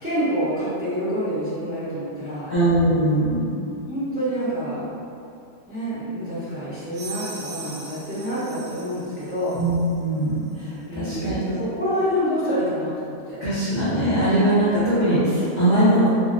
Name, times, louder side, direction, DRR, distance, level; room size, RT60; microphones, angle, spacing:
voice 1, 0.0-2.5 3.9-4.9 5.7-9.6 10.9-13.4, equal, 10° right, -14 dB, 0.5 m, -27 dB
voice 2, 2.5-3.5 9.5-11.3 13.4-16.1, right 1 dB, 45° left, -15 dB, 0.6 m, -21 dB
sound 1, 6.9-9.9, right 4 dB, 75° right, 1.0 m, -39 dB
2.6 x 2.0 x 2.4 m, 2.5 s
omnidirectional pair, 1.4 m